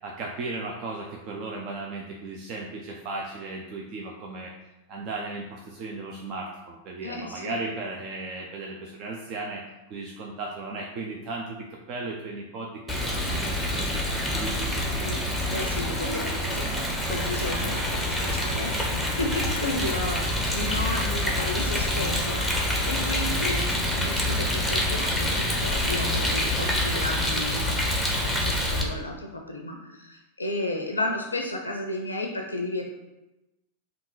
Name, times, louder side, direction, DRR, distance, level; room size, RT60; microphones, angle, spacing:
voice 1, 0.0-4.5 4.9-9.6 9.9-14.0 14.3-15.2, right 3 dB, 40° right, -1 dB, 0.5 m, -36 dB
voice 2, 7.0-7.6 15.5-16.7 17.1-22.6 22.9-27.9 28.2-32.8, left 2 dB, 80° left, 2 dB, 0.4 m, -33 dB
Rain, 12.9-28.8, left 1 dB, ahead, 0.8 m, -26 dB
3.7 x 2.5 x 4.6 m, 0.97 s
figure-of-eight pair, 90°, 0 cm